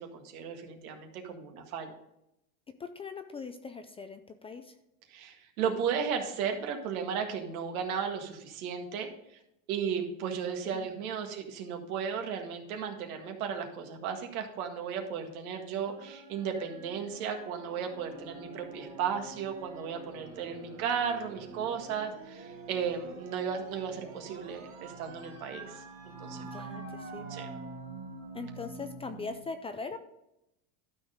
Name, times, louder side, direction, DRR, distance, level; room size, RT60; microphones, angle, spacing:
voice 1, 0.0-2.0 5.1-9.4 9.7-25.8 26.2-26.4 27.3-27.5, right 7 dB, 85° right, 4 dB, 1.9 m, -35 dB
voice 2, 2.8-4.8 10.7-10.9 11.2-11.3 26.4-27.4 28.3-30.0, left 4 dB, 15° left, 8 dB, 0.3 m, -41 dB
sound 1, 15.8-29.4, right 3 dB, 30° right, 2.0 m, -46 dB
12.0 x 4.6 x 5.0 m, 0.84 s
supercardioid pair, 130°, 42 cm